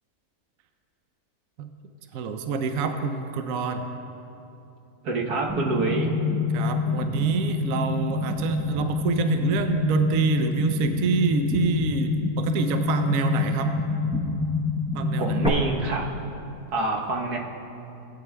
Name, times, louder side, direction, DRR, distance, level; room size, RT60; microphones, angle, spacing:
voice 1, 2.1-3.9 6.5-13.7 14.9-15.6, right 5 dB, 70° right, 6 dB, 0.9 m, -27 dB
voice 2, 5.0-6.1 15.2-16.1 16.7-17.4, right 3 dB, 85° right, -1 dB, 1.6 m, -26 dB
sound 1, 5.5-15.5, left 3 dB, 5° right, 0.5 m, -27 dB
18.0 x 9.0 x 2.2 m, 2.8 s
omnidirectional pair, 1.6 m